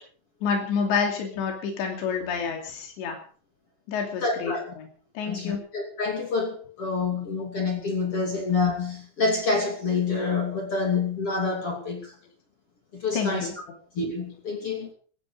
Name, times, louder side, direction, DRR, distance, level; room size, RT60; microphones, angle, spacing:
voice 1, 0.4-3.2 3.9-4.9 5.2-5.6 13.1-13.5, left 6 dB, 85° left, 4.9 m, -28 dB
voice 2, 4.2-4.7 5.2-12.1 12.9-13.5 13.9-14.9, left 4 dB, 35° left, 3.1 m, -27 dB
16.5 x 15.0 x 5.2 m
omnidirectional pair, 4.9 m